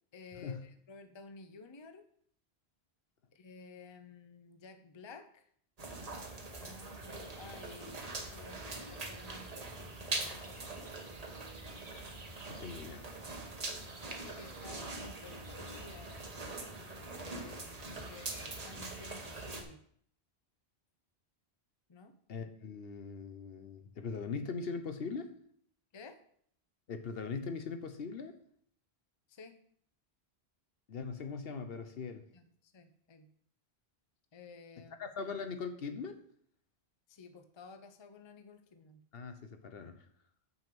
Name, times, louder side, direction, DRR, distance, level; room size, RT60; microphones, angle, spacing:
voice 1, 0.1-2.1 3.3-5.5 6.6-10.7 14.1-16.3 17.2-19.8 21.9-22.1 25.9-26.2 29.3-29.5 32.3-33.3 34.3-35.0 37.1-39.0, left 4 dB, 30° left, 8 dB, 0.6 m, -53 dB
sound 1, 5.8-19.6, right 2 dB, 40° right, 1.1 m, -43 dB
voice 2, 12.5-13.1 22.3-25.3 26.9-28.4 30.9-32.3 35.0-36.2 39.1-40.0, left 5 dB, 65° left, 8 dB, 1.0 m, -40 dB
6.3 x 5.3 x 6.8 m, 0.63 s
omnidirectional pair, 1.1 m